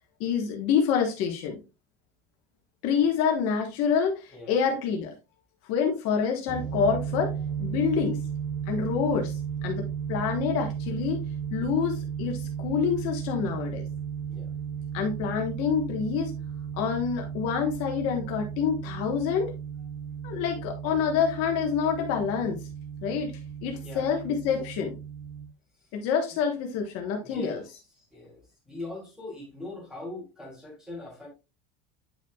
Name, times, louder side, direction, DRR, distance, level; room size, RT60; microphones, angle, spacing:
voice 1, 0.2-1.6 2.8-5.1 5.7-7.3 7.6-8.2 8.7-9.3 9.6-11.2 11.5-13.8 14.9-16.3 16.8-19.5 20.2-22.6 23.0-25.0 25.9-27.6, left 6 dB, 50° left, 1.3 m, -27 dB
sound 1, 6.5-25.5, right 7 dB, 30° right, 0.7 m, -35 dB
voice 2, 27.2-27.6 28.1-31.3, left 2 dB, ahead, 2.8 m, -41 dB
9.0 x 5.7 x 2.3 m
cardioid pair, 175°, 30 cm